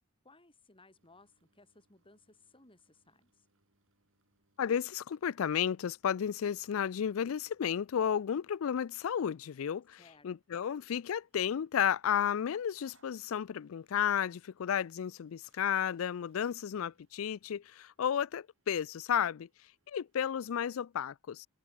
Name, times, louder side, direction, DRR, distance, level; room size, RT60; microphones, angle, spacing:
voice 1, 0.2-3.4 10.0-10.3, left 2 dB, 25° left, 6.1 m, -61 dB
sound 1, 0.9-20.3, right 3 dB, 65° right, 7.0 m, -78 dB
voice 2, 4.6-19.5 19.9-21.5, left 8 dB, 70° left, 0.4 m, -33 dB
head